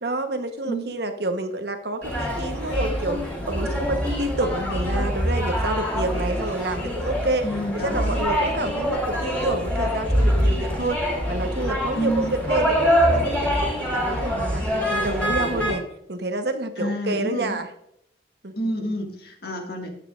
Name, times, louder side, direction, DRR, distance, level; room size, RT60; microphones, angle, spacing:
voice 1, 0.0-3.2 3.5-7.4 7.7-11.0 11.3-17.7 18.4-18.5, right 2 dB, 60° right, 7 dB, 1.1 m, -28 dB
sound 1, 2.0-15.7, equal, 5° left, 3.6 m, -24 dB
voice 2, 7.4-8.2 12.0-12.4 16.8-17.6 18.6-19.9, equal, 55° left, 2 dB, 2.0 m, -28 dB
13.0 x 9.7 x 2.5 m, 0.74 s
head